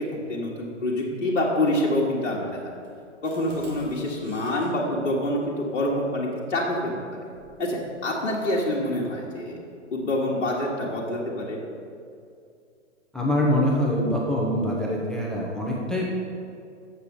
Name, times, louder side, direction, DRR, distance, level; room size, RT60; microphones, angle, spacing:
voice 1, 0.0-2.6 3.2-7.0 7.6-9.6 9.9-11.6, left 1 dB, 60° left, -5 dB, 1.5 m, -26 dB
sound 1, 2.8-4.7 7.3-7.6 8.1-8.8, right 2 dB, 75° right, 2.4 m, -47 dB
voice 2, 13.1-16.0, left 1 dB, ahead, -4 dB, 0.8 m, -24 dB
8.1 x 6.9 x 5.4 m, 2.4 s
figure-of-eight pair, 115°, 37 cm